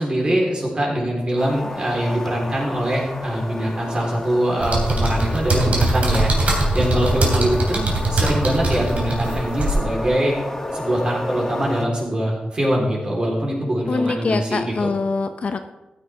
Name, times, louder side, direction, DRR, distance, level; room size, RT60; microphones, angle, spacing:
voice 1, 0.0-10.3 10.7-14.9, equal, 35° right, -3 dB, 3.8 m, -23 dB
sound 1, 1.4-11.9, left 1 dB, 20° left, 1.1 m, -32 dB
sound 2, 4.6-9.8, right 2 dB, 55° right, 3.1 m, -21 dB
voice 2, 13.9-15.7, left 4 dB, 50° left, 8 dB, 0.7 m, -24 dB
14.5 x 9.9 x 3.5 m, 1.0 s
wide cardioid pair, 105°, 3 cm